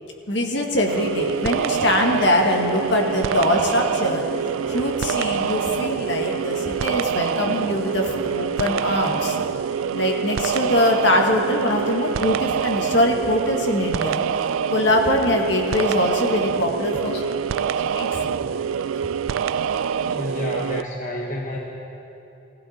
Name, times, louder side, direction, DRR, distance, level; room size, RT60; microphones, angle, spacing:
voice 1, 0.3-4.2 4.7-9.4 9.9-14.2 14.7-17.4 17.9-18.4 19.0-19.1, left 1 dB, 60° left, 1 dB, 1.8 m, -22 dB
sound 1, 0.9-20.8, right 7 dB, 85° right, 0.4 m, -25 dB
sound 2, 2.1-9.6, equal, 10° left, 1.2 m, -41 dB
voice 2, 20.0-21.6, left 1 dB, 40° left, -2 dB, 1.4 m, -30 dB
20.5 x 15.5 x 4.4 m, 3.0 s
head